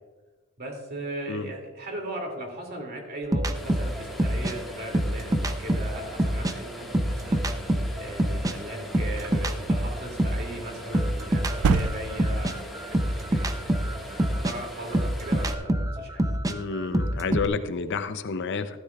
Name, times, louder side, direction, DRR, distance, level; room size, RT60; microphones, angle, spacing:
voice 1, 0.6-7.5 8.0-13.8 14.1-16.2, right 1 dB, 45° right, 1 dB, 2.5 m, -38 dB
sound 1, 3.3-6.6 6.9-10.5 10.9-17.5, right 1 dB, 15° right, 0.5 m, -26 dB
sound 2, 3.5-15.5, equal, ahead, 1.6 m, -42 dB
sound 3, 9.2-9.3 11.4-12.4, right 5 dB, 80° right, 0.4 m, -27 dB
voice 2, 16.5-18.8, left 4 dB, 55° left, 10 dB, 0.6 m, -30 dB
15.0 x 13.0 x 2.4 m, 1.2 s
head